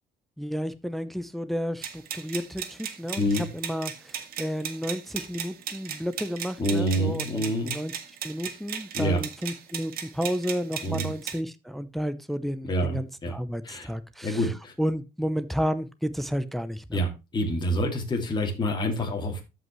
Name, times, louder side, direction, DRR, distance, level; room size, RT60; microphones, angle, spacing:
voice 1, 0.4-3.2 3.5-7.9 8.2-17.0, equal, ahead, 0.7 m, -32 dB
sound 1, 1.8-11.4, right 8 dB, 60° right, 1.7 m, -36 dB
voice 2, 6.6-7.7 8.9-9.2 10.8-11.1 12.7-13.3 13.6-13.9 14.2-14.7 16.9-19.4, equal, 25° left, 2.4 m, -27 dB
13.0 x 5.5 x 3.1 m
cardioid pair, 110°, 17 cm